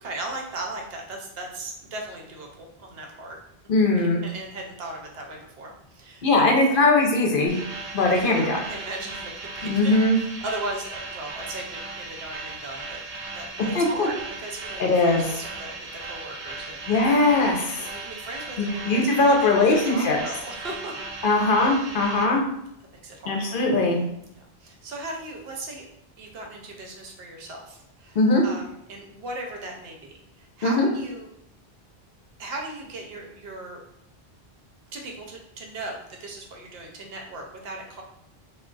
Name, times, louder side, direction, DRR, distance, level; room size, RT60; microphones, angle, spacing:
voice 1, 0.0-3.4 3.9-6.8 8.0-8.1 8.3-13.0 13.3-17.2 17.7-20.9 23.0-23.4 24.2-25.9 26.2-28.2 28.4-31.3 32.4-33.8 34.9-38.0, right 2 dB, 75° right, 1 dB, 0.8 m, -37 dB
voice 2, 3.7-4.2 6.2-7.6 7.9-8.6 9.6-10.2 13.7-14.1 14.8-15.4 16.9-17.9 18.6-20.2 21.2-22.4 23.3-24.0 28.2-28.4 30.6-30.9, left 2 dB, 60° left, 0 dB, 0.7 m, -20 dB
sound 1, 7.5-22.2, right 3 dB, 40° right, 0.5 m, -37 dB
2.3 x 2.2 x 3.7 m, 0.77 s
omnidirectional pair, 1.0 m